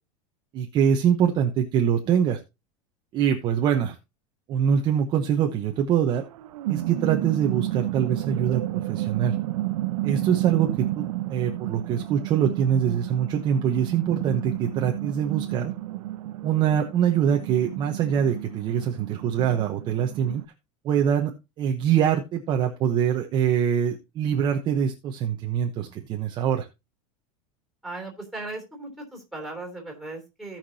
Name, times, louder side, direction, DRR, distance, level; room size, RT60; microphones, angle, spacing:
voice 1, 0.5-2.4 3.1-4.0 4.5-6.2 6.7-9.4 10.0-15.7 16.4-20.4 20.8-21.3 21.6-26.7, right 8 dB, 25° right, 3 dB, 0.9 m, -24 dB
sound 1, 6.2-20.4, right 16 dB, 80° right, 0.8 m, -31 dB
voice 2, 27.8-30.6, right 2 dB, ahead, 1 dB, 3.2 m, -37 dB
17.0 x 5.9 x 2.8 m, 0.25 s
supercardioid pair, 175°, 17 cm